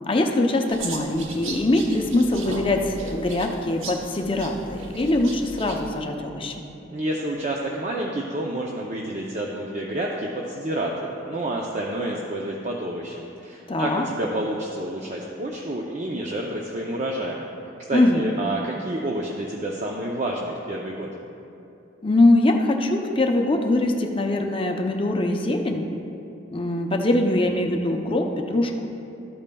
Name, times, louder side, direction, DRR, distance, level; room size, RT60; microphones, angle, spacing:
voice 1, 0.1-6.6 13.7-14.0 17.9-18.3 22.0-25.9 26.5-28.9, left 2 dB, 25° left, 3 dB, 0.5 m, -22 dB
sound 1, 0.7-6.0, right 2 dB, 85° right, 1.0 m, -37 dB
voice 2, 6.9-17.4 17.8-21.1, right 1 dB, 35° right, -1 dB, 0.5 m, -29 dB
13.0 x 8.7 x 2.3 m, 2.8 s
head